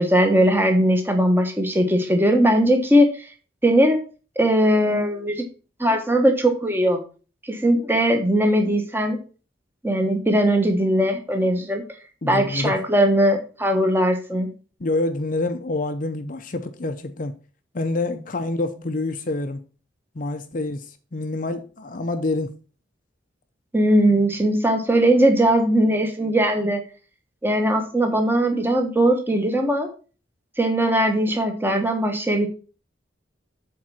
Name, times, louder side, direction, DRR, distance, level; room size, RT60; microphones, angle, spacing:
voice 1, 0.0-3.1 3.6-4.0 4.4-5.4 5.8-7.0 7.4-9.2 9.8-11.8 12.2-14.5 23.7-26.8 27.4-29.9 30.6-32.5, right 1 dB, 10° right, 1.2 m, -19 dB
voice 2, 12.2-12.7 14.8-17.3 17.7-19.6 20.1-22.5, left 2 dB, 45° left, 0.6 m, -27 dB
7.7 x 4.6 x 5.7 m
head